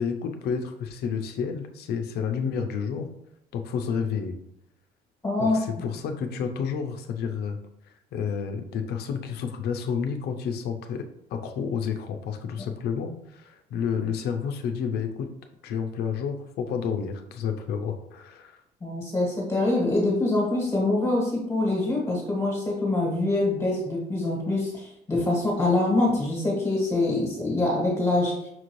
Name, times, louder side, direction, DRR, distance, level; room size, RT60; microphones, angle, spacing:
voice 1, 0.0-3.1 3.5-4.4 5.4-7.6 7.9-15.3 15.6-18.6, left 6 dB, 70° left, 6 dB, 0.5 m, -30 dB
voice 2, 5.2-5.6 18.8-28.5, left 2 dB, 15° left, -2 dB, 1.4 m, -25 dB
5.9 x 2.5 x 3.1 m, 0.82 s
cardioid pair, 110°, 17 cm